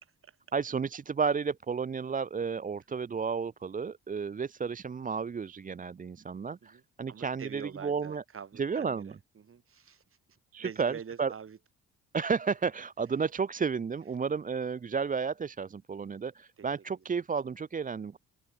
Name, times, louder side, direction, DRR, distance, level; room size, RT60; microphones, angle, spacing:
voice 1, 0.5-8.2 8.6-9.2 10.5-11.3 12.1-18.2, right 5 dB, 25° right, 0.7 m, -32 dB
voice 2, 7.1-10.0 10.6-11.6 16.6-17.0, right 7 dB, 45° right, 5.4 m, -45 dB
open air
cardioid pair, 90°, 30 cm